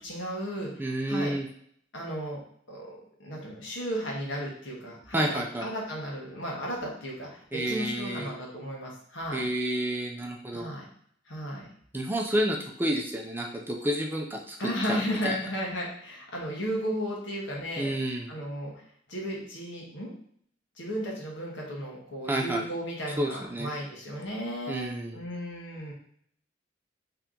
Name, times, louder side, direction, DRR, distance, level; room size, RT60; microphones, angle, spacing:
voice 1, 0.0-0.7 1.1-1.3 1.9-2.4 2.7-2.9 3.2-9.5 10.5-10.8 11.3-11.7 14.6-17.9 18.3-18.7 19.1-20.1 20.8-25.9, equal, 90° left, -3 dB, 1.3 m, -34 dB
voice 2, 0.8-1.5 5.1-5.7 7.5-8.3 9.3-10.7 11.9-14.6 14.9-15.4 17.8-18.3 22.3-22.6 23.2-23.7 24.7-25.2, right 1 dB, 10° right, 0 dB, 0.4 m, -30 dB
3.3 x 2.9 x 3.8 m, 0.63 s
head